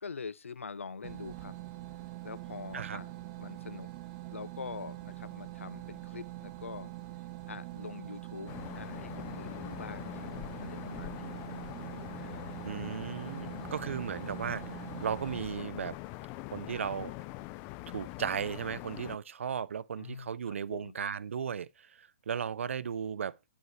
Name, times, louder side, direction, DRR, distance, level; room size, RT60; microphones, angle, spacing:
voice 1, 0.0-1.6 2.2-3.1 3.4-3.9 4.3-6.9 7.5-10.3 10.6-11.4 12.2-12.8 20.0-20.9, left 5 dB, 90° left, 0.6 m, -44 dB
sound 1, 1.0-15.4, right 16 dB, 35° right, 0.8 m, -44 dB
sound 2, 8.5-19.2, left 18 dB, 30° left, 0.5 m, -43 dB
voice 2, 12.6-14.6 15.0-16.0 16.5-17.1 17.9-23.4, right 7 dB, 75° right, 0.4 m, -36 dB
11.0 x 5.6 x 3.1 m
hypercardioid pair, 130°, 7 cm